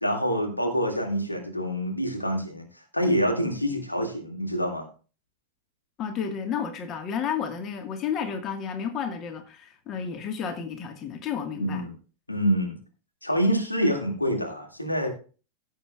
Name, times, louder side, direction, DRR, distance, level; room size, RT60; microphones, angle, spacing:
voice 1, 0.0-2.7 2.9-4.9 11.6-11.9 12.3-12.8 13.2-15.1, equal, 85° left, 2.1 m, -26 dB
voice 2, 6.0-11.9, left 7 dB, 30° left, 1.5 m, -31 dB
16.0 x 7.7 x 2.3 m
figure-of-eight pair, 90°, 0 cm